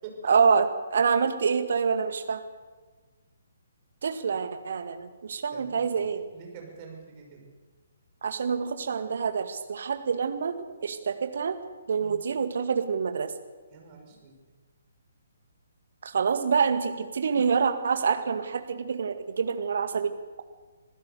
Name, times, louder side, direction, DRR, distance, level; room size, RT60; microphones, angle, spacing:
voice 1, 0.3-2.4 4.0-6.2 8.2-10.5 10.8-11.6 11.9-13.3 16.0-20.4, right 6 dB, 50° right, 9 dB, 1.9 m, -26 dB
voice 2, 5.5-6.1 6.3-7.5 12.0-12.2 13.7-14.3, right 5 dB, 30° right, 1 dB, 6.0 m, -45 dB
26.0 x 15.5 x 6.9 m, 1.4 s
figure-of-eight pair, 135°, 0 cm